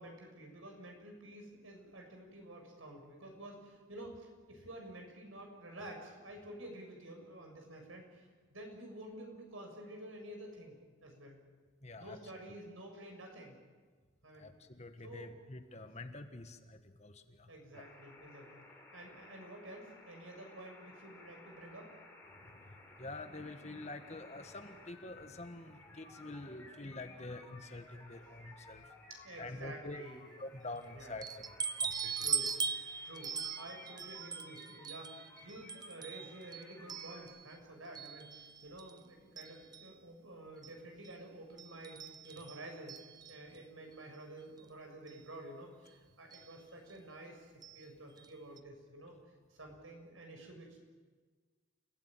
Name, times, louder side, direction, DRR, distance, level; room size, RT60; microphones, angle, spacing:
voice 1, 0.0-11.4 12.0-13.6 14.2-14.5 15.0-15.4 17.5-18.7 18.9-21.9 29.1-30.3 30.9-31.2 32.2-32.5 33.0-43.0 43.3-49.2 49.5-50.8, right 1 dB, 80° right, 2 dB, 7.0 m, -50 dB
voice 2, 11.8-12.2 14.3-17.5 22.3-28.9 29.4-30.0 30.4-31.4 31.8-32.3, left 2 dB, 35° left, 7 dB, 1.6 m, -47 dB
sound 1, 17.7-37.2, left 2 dB, 10° left, 4.9 m, -57 dB
sound 2, 31.2-37.5 37.9-39.0 39.4-39.9 40.6-40.7 41.0-41.1 41.6-43.6 44.6-44.7 45.1-45.2 46.3-46.5 47.6-47.8 48.2-48.3 48.6-48.7, right 6 dB, 20° right, 0.7 m, -41 dB
29.5 x 17.0 x 9.2 m, 1.5 s
head